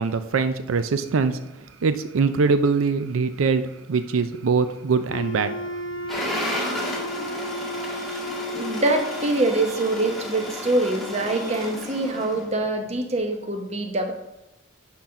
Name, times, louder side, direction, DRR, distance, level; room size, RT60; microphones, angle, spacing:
voice 1, 0.0-1.4 1.8-5.6, right 4 dB, 90° right, 10 dB, 0.5 m, -22 dB
Wind instrument woodwind instrument, 5.1-9.4, equal, 80° left, 0.8 m, -33 dB
sound 1, 6.1-12.5, left 1 dB, ahead, 1.5 m, -32 dB
voice 2, 8.5-14.1, right 2 dB, 30° right, 4 dB, 1.0 m, -24 dB
10.5 x 3.9 x 5.7 m, 0.95 s
head